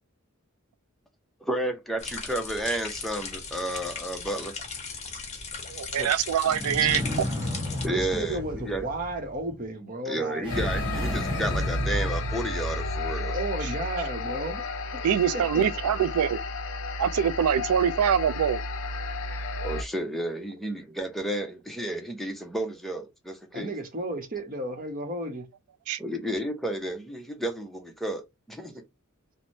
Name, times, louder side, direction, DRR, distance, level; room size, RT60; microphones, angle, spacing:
voice 1, 1.4-4.6 6.0-6.1 7.8-8.9 10.0-13.4 19.6-23.7 26.0-28.8, right 1 dB, ahead, 0.6 m, -32 dB
sound 1, 2.0-7.9, left 5 dB, 30° left, 0.8 m, -37 dB
voice 2, 5.7-7.0 15.0-16.4 17.0-18.6 25.9-26.0, right 8 dB, 85° right, 0.4 m, -24 dB
sound 2, 6.4-9.5 10.4-13.1, left 1 dB, 25° right, 1.2 m, -33 dB
voice 3, 7.9-10.5 13.3-14.6 14.9-15.0 15.3-15.6 23.5-25.5, right 1 dB, 40° right, 0.9 m, -33 dB
sound 3, 10.5-19.8, left 2 dB, 60° left, 0.5 m, -32 dB
3.2 x 2.1 x 2.6 m
head